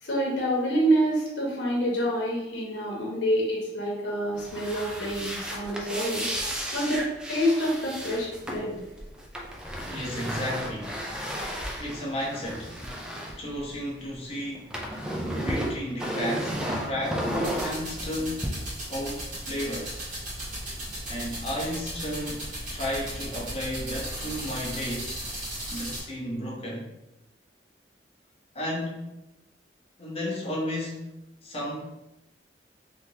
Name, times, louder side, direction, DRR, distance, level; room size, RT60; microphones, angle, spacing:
voice 1, 0.0-6.3 6.7-8.7, equal, 85° left, -3 dB, 0.9 m, -27 dB
sound 1, 4.3-14.1 14.4-18.5, equal, 5° right, 0.4 m, -33 dB
voice 2, 9.9-11.0 11.8-12.7 13.4-14.7 15.4-18.5 18.9-20.0 21.0-25.2 25.7-26.9 28.5-29.1 30.0-31.1 31.4-31.8, left 1 dB, 35° left, -4 dB, 0.9 m, -33 dB
sound 2, 17.4-26.0, right 1 dB, 50° right, 1.4 m, -36 dB
3.3 x 2.9 x 2.8 m, 0.94 s
head